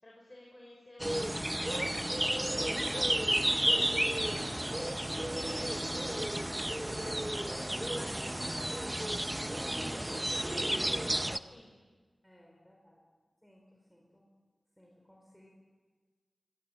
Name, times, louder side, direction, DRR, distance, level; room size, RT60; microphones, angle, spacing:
voice 1, 0.0-5.1 5.5-10.5 10.9-11.7, left 1 dB, 30° left, -2 dB, 5.6 m, -56 dB
sound 1, 1.0-11.4, right 1 dB, 10° right, 0.8 m, -32 dB
voice 2, 12.2-13.0 13.4-14.2 14.8-15.5, left 1 dB, 5° left, -1 dB, 4.8 m, -61 dB
24.5 x 22.0 x 9.1 m, 1.4 s
wide cardioid pair, 85°, 0 cm